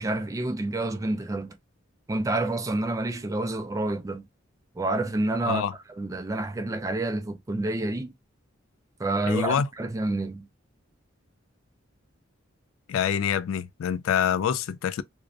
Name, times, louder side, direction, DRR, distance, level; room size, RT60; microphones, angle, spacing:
voice 1, 0.0-1.6 2.1-4.2 4.8-5.6 6.0-8.1 9.0-10.4, right 2 dB, 15° right, 0.3 m, -28 dB
voice 2, 5.4-5.7 9.3-9.7 12.9-15.0, left 8 dB, 85° left, 0.3 m, -26 dB
2.5 x 2.0 x 2.4 m
head